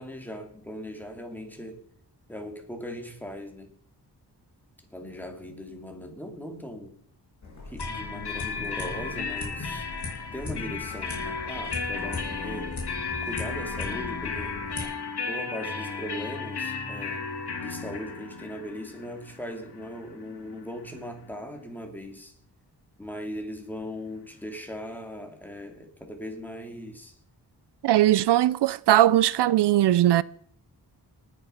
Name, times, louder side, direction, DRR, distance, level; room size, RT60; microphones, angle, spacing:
voice 1, 0.0-1.8 2.3-3.7 4.9-6.9 7.7-9.9 10.3-12.8 13.2-14.6 15.3-17.3 17.6-22.3 23.0-27.2, left 1 dB, 5° left, 2.8 m, -39 dB
sound 1, 7.4-14.8, left 3 dB, 45° left, 6.1 m, -38 dB
sound 2, 7.8-21.4, left 5 dB, 70° left, 2.0 m, -35 dB
voice 2, 27.8-30.2, right 13 dB, 85° right, 0.5 m, -20 dB
19.5 x 6.9 x 5.6 m
wide cardioid pair, 105°, 40 cm